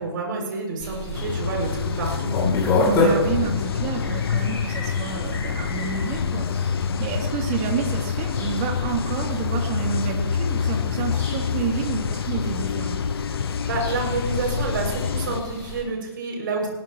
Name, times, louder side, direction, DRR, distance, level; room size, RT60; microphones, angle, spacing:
voice 1, 0.0-2.3 13.6-16.7, right 3 dB, 50° right, 0 dB, 7.1 m, -28 dB
sound 1, 0.8-15.8, left 3 dB, 20° left, 6.9 m, -30 dB
sound 2, 1.1-15.4, left 7 dB, 60° left, 0.7 m, -27 dB
voice 2, 2.9-6.5 6.7-13.0, right 7 dB, 30° right, 1 dB, 3.2 m, -29 dB
20.0 x 19.5 x 3.2 m, 1.1 s
hypercardioid pair, 140°, 14 cm